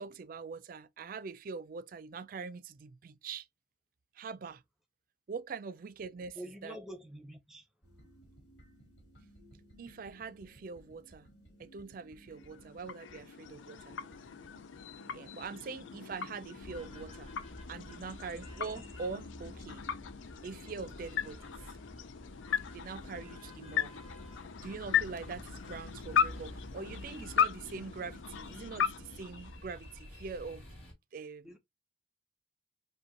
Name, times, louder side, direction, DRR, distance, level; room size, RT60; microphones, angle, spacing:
voice 1, 0.0-3.5 4.2-4.6 5.3-6.4 6.6-6.8 9.8-11.3 11.6-14.0 15.1-17.3 17.7-19.8 20.4-21.6 22.7-24.1 24.6-30.7 31.1-31.6, right 5 dB, 45° right, 0.3 m, -43 dB
voice 2, 6.3-7.7 31.4-31.6, equal, ahead, 0.7 m, -46 dB
sound 1, 7.8-19.2, equal, 65° left, 2.1 m, -59 dB
sound 2, 12.3-30.1, left 8 dB, 85° left, 0.4 m, -37 dB
sound 3, 16.6-30.9, left 1 dB, 30° left, 2.2 m, -50 dB
5.1 x 2.2 x 2.8 m
head